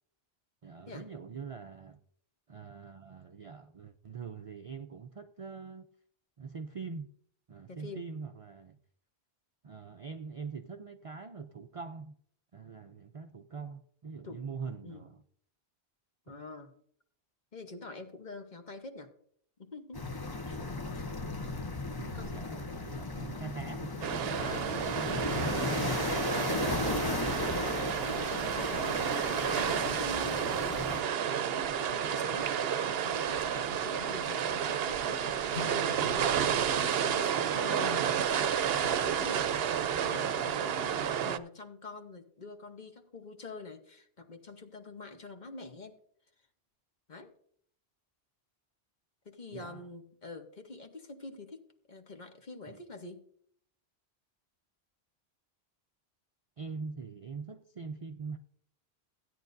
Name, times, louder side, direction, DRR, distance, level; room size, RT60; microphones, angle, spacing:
voice 1, 0.6-2.0 2.5-5.9 6.4-7.1 7.5-8.8 9.6-12.2 12.5-15.2 16.3-16.4 22.0-24.2 49.5-49.9 52.7-52.8 56.6-58.4, right 5 dB, 45° right, 0.4 m, -43 dB
voice 2, 7.7-8.1 14.2-14.4 14.8-15.1 16.3-16.7 17.5-19.1 19.6-20.0 20.4-20.6 20.9-21.1 22.1-22.6 24.4-28.9 29.3-32.5 33.0-46.0 47.1-47.3 49.2-53.2, left 3 dB, 45° left, 1.2 m, -46 dB
sound 1, 19.9-31.0, left 3 dB, 25° left, 0.7 m, -35 dB
sound 2, 24.0-41.4, right 8 dB, 70° right, 0.8 m, -31 dB
Acoustic guitar / Strum, 35.5-39.1, left 6 dB, 85° left, 1.1 m, -48 dB
16.0 x 9.5 x 2.6 m
omnidirectional pair, 1.1 m